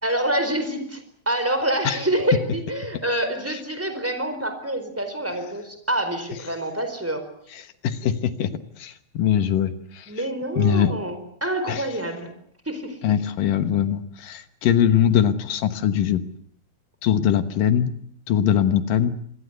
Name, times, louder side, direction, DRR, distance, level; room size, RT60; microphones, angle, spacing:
voice 1, 0.0-7.2 10.1-12.3 12.7-13.0, right 1 dB, 5° right, 8 dB, 3.9 m, -26 dB
voice 2, 7.5-8.5 8.8-10.2 10.6-10.9 11.7-11.8 13.0-16.2 17.0-17.9 18.3-19.1, left 9 dB, 70° left, 10 dB, 2.7 m, -22 dB
25.5 x 21.5 x 8.1 m, 0.64 s
omnidirectional pair, 4.3 m